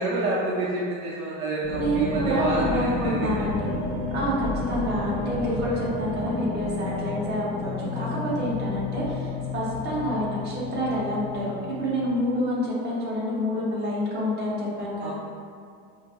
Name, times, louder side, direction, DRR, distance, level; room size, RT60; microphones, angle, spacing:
voice 1, 0.0-3.5 15.0-15.1, right 2 dB, 65° right, -5 dB, 0.6 m, -27 dB
sound 1, 1.6-12.1, left 2 dB, 35° left, 1.2 m, -31 dB
voice 2, 1.7-3.7 4.1-11.5 11.8-15.1, equal, 30° right, -7 dB, 1.1 m, -28 dB
5.0 x 2.6 x 2.2 m, 2.3 s
cardioid pair, 150°, 32 cm